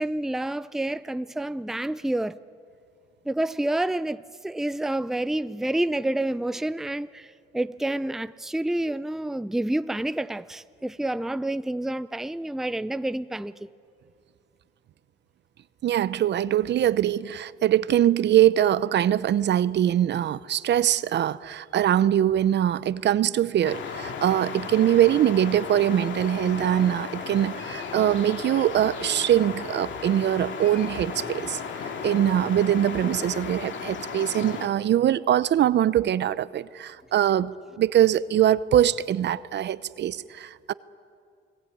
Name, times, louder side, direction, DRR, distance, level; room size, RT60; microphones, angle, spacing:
voice 1, 0.0-2.4 3.3-13.7, right 1 dB, ahead, 0.5 m, -28 dB
voice 2, 15.8-40.7, right 11 dB, 60° right, 0.7 m, -23 dB
sound 1, 23.6-34.7, left 6 dB, 70° left, 2.3 m, -35 dB
29.0 x 19.0 x 9.3 m
cardioid pair, 90°, 20 cm